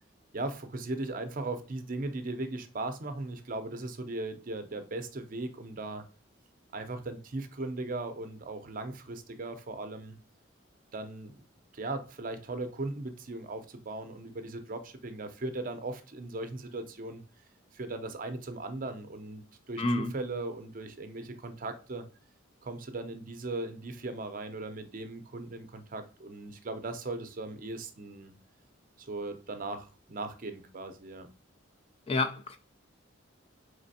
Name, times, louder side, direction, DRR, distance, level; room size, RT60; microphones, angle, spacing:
voice 1, 0.3-6.0 6.7-10.2 10.9-11.4 11.7-17.2 17.7-22.0 22.6-28.3 29.0-31.3, right 2 dB, 45° right, 0.6 m, -38 dB
voice 2, 19.8-20.1 32.1-32.6, left 2 dB, 30° left, 0.3 m, -29 dB
4.2 x 3.2 x 2.7 m
head